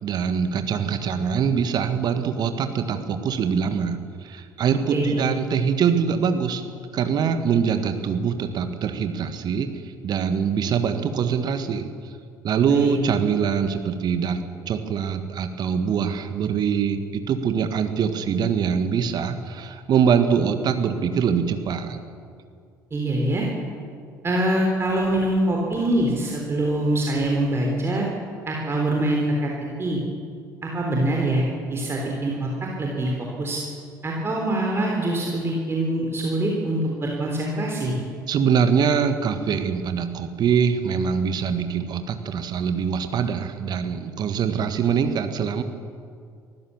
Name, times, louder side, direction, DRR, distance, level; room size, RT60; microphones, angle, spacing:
voice 1, 0.0-6.6 6.9-9.7 10.0-11.9 12.4-22.0 38.3-45.6, right 7 dB, 45° right, 8 dB, 1.7 m, -23 dB
voice 2, 4.9-5.3 12.7-13.0 22.9-23.5 24.2-28.0 28.5-29.5 29.8-30.0 30.6-31.4 31.7-33.1 33.4-33.6 34.0-38.0, right 1 dB, 25° right, -1 dB, 3.8 m, -24 dB
24.5 x 15.0 x 7.3 m, 2.3 s
figure-of-eight pair, 60°, 10 cm